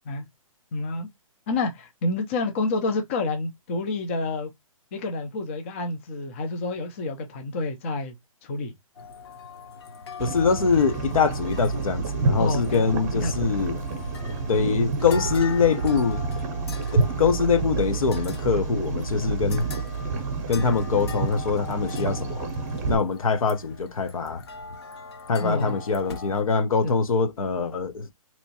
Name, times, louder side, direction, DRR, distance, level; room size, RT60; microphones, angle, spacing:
voice 1, 0.7-1.1 1.5-4.5 4.9-8.1 8.4-8.7 12.4-13.5 14.3-14.4 25.4-25.8 26.8-27.0, left 2 dB, 20° left, 0.4 m, -29 dB
sound 1, 9.0-26.4, left 4 dB, 45° left, 0.8 m, -42 dB
voice 2, 10.2-13.8 14.5-16.3 16.9-19.7 20.5-22.5 22.9-24.4 25.3-28.1, left 5 dB, 75° left, 0.9 m, -23 dB
sound 2, 10.2-22.9, right 4 dB, 30° right, 0.7 m, -29 dB
3.4 x 2.9 x 2.7 m
hypercardioid pair, 160°, 18 cm